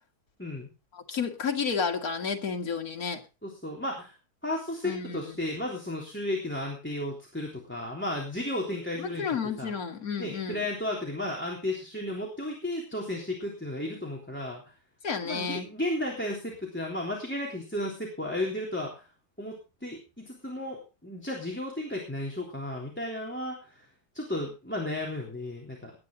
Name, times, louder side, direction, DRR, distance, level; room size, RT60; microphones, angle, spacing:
voice 1, 0.4-0.7 3.4-4.1 4.4-9.3 9.6-9.7 10.2-14.6 15.2-19.1 19.4-23.9 24.1-25.9, left 1 dB, 5° left, -1 dB, 3.4 m, -34 dB
voice 2, 0.9-3.2 4.8-5.3 9.0-10.6 15.0-15.7, left 6 dB, 65° left, 3 dB, 2.3 m, -31 dB
20.0 x 9.9 x 3.8 m, 0.30 s
omnidirectional pair, 1.7 m